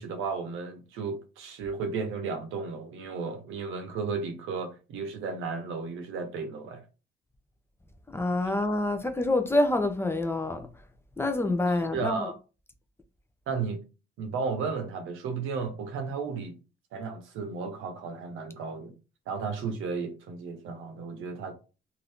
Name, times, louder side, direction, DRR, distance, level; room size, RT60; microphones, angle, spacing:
voice 1, 0.0-6.8 11.9-12.3 13.5-13.8 14.2-16.6 16.9-18.9 19.3-21.5, right 5 dB, 90° right, 0.7 m, -34 dB
voice 2, 8.1-10.7 11.2-12.3, left 2 dB, 10° left, 0.5 m, -26 dB
2.6 x 2.5 x 3.4 m
cardioid pair, 90°, 20 cm